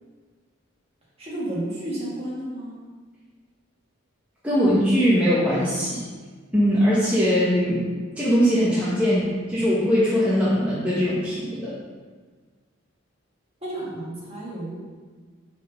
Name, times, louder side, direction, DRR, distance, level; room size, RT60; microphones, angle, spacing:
voice 1, 1.2-2.8 13.6-14.8, right 1 dB, 30° right, -6 dB, 1.7 m, -31 dB
voice 2, 4.4-6.0 6.5-7.8 8.1-11.7, equal, 5° right, -9 dB, 0.9 m, -21 dB
4.8 x 4.2 x 5.4 m, 1.5 s
head